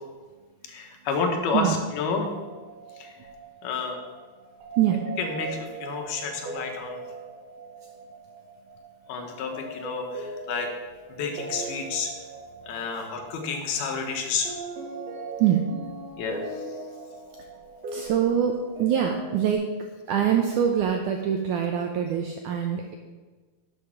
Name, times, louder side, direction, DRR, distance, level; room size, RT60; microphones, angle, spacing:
voice 1, 0.7-2.3 3.0-3.1 3.6-4.0 5.2-7.0 9.1-10.7 11.1-12.1 12.7-14.5 16.2-16.4, left 5 dB, 80° left, 4 dB, 3.2 m, -30 dB
sound 1, 2.1-19.5, right 2 dB, 50° right, 2.5 m, -40 dB
voice 2, 17.9-19.7 20.1-22.9, right 9 dB, 80° right, 3 dB, 1.8 m, -24 dB
11.5 x 7.2 x 5.8 m, 1.4 s
omnidirectional pair, 4.5 m